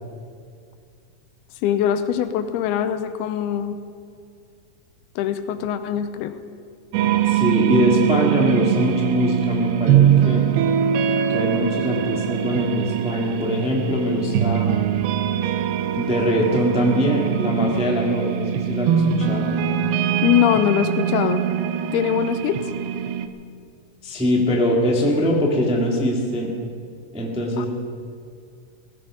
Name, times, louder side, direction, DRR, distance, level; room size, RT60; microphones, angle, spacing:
voice 1, 1.6-3.8 5.2-6.3 20.2-21.4 21.9-22.6 27.6-27.7, left 10 dB, 85° left, 10 dB, 2.7 m, -22 dB
sound 1, 6.9-23.3, right 9 dB, 80° right, 2.7 m, -22 dB
voice 2, 7.2-10.5 11.3-14.7 16.0-19.5 24.0-26.5 27.1-27.7, equal, 5° right, -2 dB, 0.9 m, -22 dB
18.0 x 15.5 x 5.1 m, 2.2 s
omnidirectional pair, 4.5 m